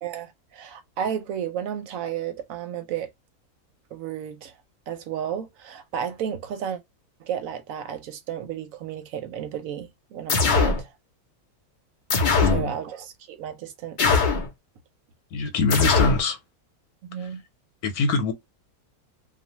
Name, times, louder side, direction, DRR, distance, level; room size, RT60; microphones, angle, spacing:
voice 1, 0.0-3.1 3.9-4.5 4.9-6.8 7.2-10.9 12.5-14.2 17.0-17.4, right 9 dB, 70° right, 0.9 m, -33 dB
sound 1, 10.3-10.8 12.1-12.6 14.0-14.5 15.7-16.2, left 4 dB, 55° left, 0.5 m, -20 dB
voice 2, 12.4-12.7 15.3-16.4 17.8-18.3, left 3 dB, 80° left, 1.2 m, -23 dB
2.5 x 2.2 x 2.8 m
omnidirectional pair, 1.6 m